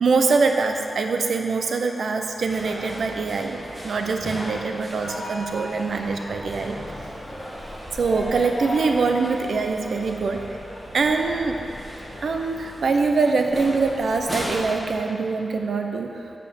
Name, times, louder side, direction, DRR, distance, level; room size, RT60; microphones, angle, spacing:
voice 1, 0.0-3.6 3.8-6.8 7.9-10.5 10.9-11.6 12.2-16.2, right 4 dB, 70° right, 4 dB, 0.7 m, -23 dB
sound 1, 2.5-15.0, equal, 5° right, 1.7 m, -36 dB
8.6 x 5.4 x 7.0 m, 2.7 s
wide cardioid pair, 120°, 0 cm